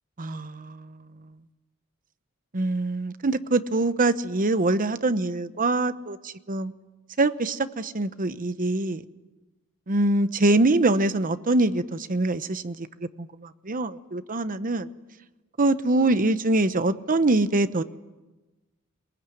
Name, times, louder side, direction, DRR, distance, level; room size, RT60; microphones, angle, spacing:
voice 1, 0.2-1.3 2.5-6.7 7.2-9.0 9.9-14.9 15.6-17.8, right 2 dB, 40° right, 0.9 m, -24 dB
22.0 x 19.5 x 9.3 m
head